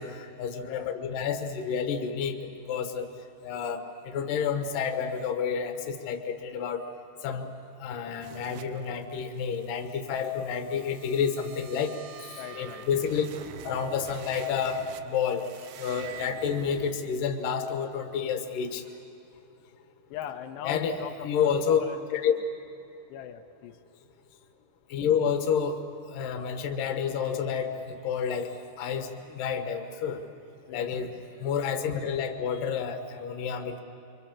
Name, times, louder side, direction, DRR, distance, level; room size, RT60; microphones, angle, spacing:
voice 1, 0.0-3.1 3.4-6.8 7.2-7.5 7.8-13.3 13.6-15.4 15.8-18.8 20.6-21.0 21.2-21.8 22.1-22.3 24.9-25.8 26.1-28.5 28.8-30.2 30.7-31.1 31.4-33.8, left 7 dB, 65° left, 5 dB, 2.8 m, -29 dB
sound 1, 8.2-16.9, right 9 dB, 85° right, 1.8 m, -47 dB
voice 2, 12.4-13.1 20.1-22.0 23.1-23.8 30.7-31.1, left 9 dB, 90° left, 5 dB, 3.1 m, -40 dB
26.0 x 25.0 x 7.4 m, 2.7 s
omnidirectional pair, 4.8 m